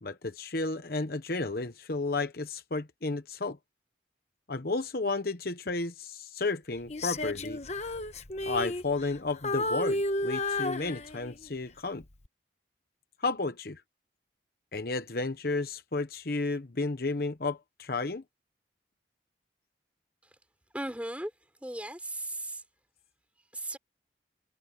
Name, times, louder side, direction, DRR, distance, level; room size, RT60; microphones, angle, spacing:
voice 1, 0.0-3.6 4.5-7.6 8.4-12.0 13.2-13.8 14.7-18.2, left 3 dB, 55° left, 1.0 m, -32 dB
Female singing, 6.9-9.2 9.4-11.5 12.0-12.3, left 2 dB, 35° left, 1.1 m, -32 dB
voice 2, 20.7-21.3 21.6-22.6 23.5-23.8, right 1 dB, 5° right, 5.4 m, -37 dB
head